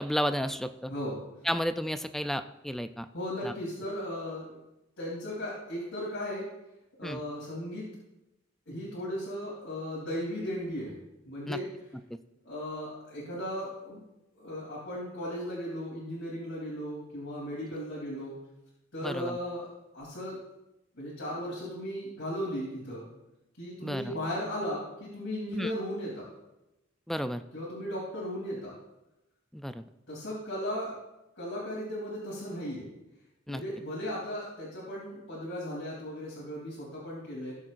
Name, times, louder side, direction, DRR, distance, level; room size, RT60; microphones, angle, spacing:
voice 1, 0.0-0.9 1.4-3.1 3.4-3.5 7.0-7.2 11.5-11.6 19.0-19.4 23.8-24.1 25.5-25.7 27.1-27.4 29.5-29.8 33.5-33.6, equal, ahead, 10 dB, 0.4 m, -32 dB
voice 2, 0.9-1.5 3.1-4.5 5.0-6.5 7.0-7.8 8.7-11.0 11.3-11.7 12.4-14.0 14.3-18.4 18.9-19.7 19.9-20.4 21.0-23.1 23.6-26.3 27.5-28.7 30.1-31.0 31.4-32.9 33.5-37.5, equal, 80° left, -6 dB, 3.5 m, -36 dB
19.0 x 7.6 x 2.6 m, 0.95 s
head